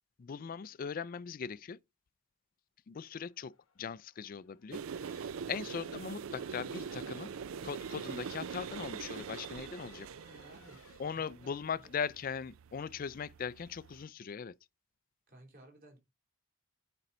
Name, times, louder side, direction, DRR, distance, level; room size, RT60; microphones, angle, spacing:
voice 1, 0.2-1.8 2.9-7.3 7.6-10.1 11.0-14.5, left 6 dB, 40° left, 0.4 m, -40 dB
Race car auto racing / Accelerating revving vroom / Mechanisms, 3.1-11.0, left 5 dB, 90° left, 1.1 m, -63 dB
sound 1, 4.7-14.0, right 6 dB, 75° right, 0.4 m, -44 dB
voice 2, 10.3-11.9 15.3-16.0, right 1 dB, 45° right, 3.6 m, -58 dB
9.2 x 5.3 x 4.3 m
head